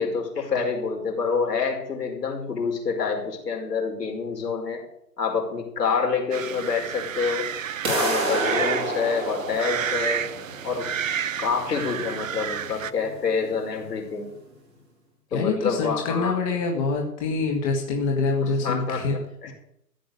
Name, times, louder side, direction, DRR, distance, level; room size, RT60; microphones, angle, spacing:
voice 1, 0.0-4.8 5.2-7.4 7.8-10.2 10.6-10.9 11.4-14.3 15.3-16.4 18.4-19.5, left 5 dB, 70° left, 3 dB, 5.0 m, -27 dB
sound 1, 6.3-12.9, right 8 dB, 55° right, 0.6 m, -31 dB
sound 2, 7.8-13.8, right 2 dB, 10° right, 2.4 m, -30 dB
voice 2, 15.3-19.1, left 4 dB, 20° left, 1 dB, 1.6 m, -25 dB
14.0 x 9.0 x 6.7 m, 0.76 s
hypercardioid pair, 155°, 50 cm